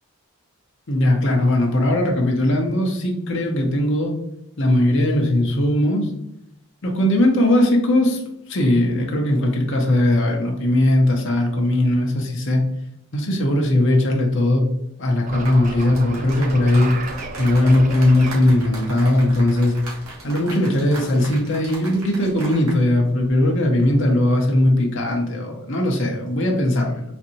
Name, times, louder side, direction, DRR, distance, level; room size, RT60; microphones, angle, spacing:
voice 1, 0.9-4.1 4.6-6.1 6.8-8.2 8.5-12.6 13.1-14.7 15.0-16.9 17.4-19.7 20.2-27.0, left 1 dB, 55° left, 1 dB, 0.7 m, -19 dB
sound 1, 15.2-20.6, right 3 dB, 35° right, 0.4 m, -35 dB
sound 2, 15.4-22.8 23.1-23.3, right 2 dB, 75° right, 1.3 m, -38 dB
4.2 x 2.6 x 2.8 m, 0.81 s
head